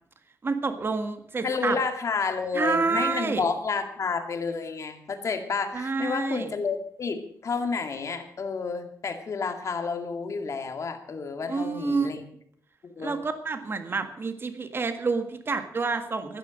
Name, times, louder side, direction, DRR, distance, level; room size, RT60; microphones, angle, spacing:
voice 1, 0.4-1.8 2.5-3.4 5.7-6.5 11.5-12.1 13.0-16.4, right 4 dB, 35° right, 8 dB, 1.7 m, -28 dB
voice 2, 1.4-12.2 12.8-13.2, left 4 dB, 50° left, 5 dB, 2.2 m, -30 dB
15.5 x 11.5 x 6.4 m, 0.65 s
wide cardioid pair, 130°, 7 cm